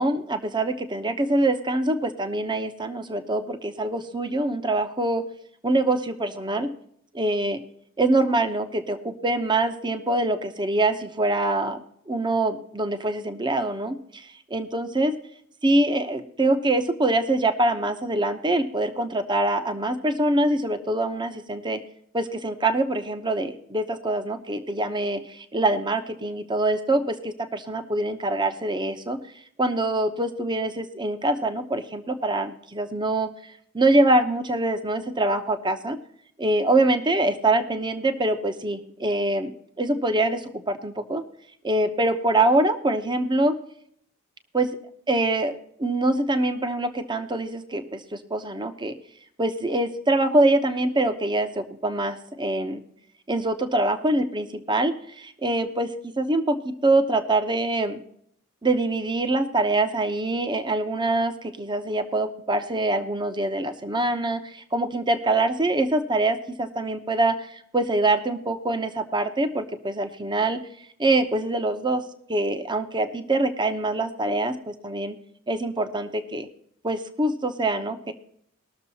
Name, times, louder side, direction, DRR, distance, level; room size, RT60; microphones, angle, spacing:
voice 1, 0.0-5.2 5.6-6.7 7.1-7.6 8.0-11.8 12.1-15.1 15.6-21.8 22.1-29.2 29.6-36.0 36.4-39.5 39.8-41.2 41.6-43.6 44.5-44.7 45.1-48.9 49.4-52.8 53.3-55.9 56.2-58.0 58.6-70.6 71.0-72.0 72.3-75.2 75.5-76.5 76.8-78.1, right 2 dB, 20° right, 8 dB, 0.9 m, -24 dB
20.0 x 6.7 x 4.1 m, 0.67 s
head